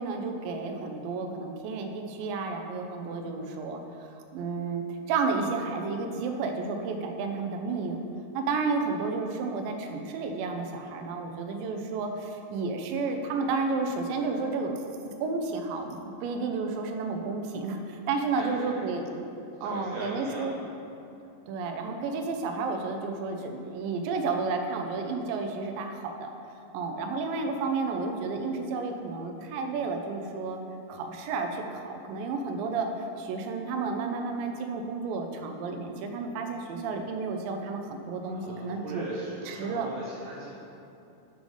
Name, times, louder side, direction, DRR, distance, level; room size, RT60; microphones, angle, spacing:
voice 1, 0.0-3.8 4.3-4.8 5.1-8.0 8.3-19.3 19.6-20.6 21.5-26.3 26.7-30.6 30.9-32.9 33.2-39.1 39.5-39.9, right 4 dB, 85° right, 4 dB, 2.0 m, -31 dB
voice 2, 18.3-19.1 19.6-20.6 38.2-40.6, right 2 dB, 65° right, -10 dB, 2.0 m, -39 dB
7.6 x 4.8 x 5.3 m, 2.8 s
omnidirectional pair, 4.7 m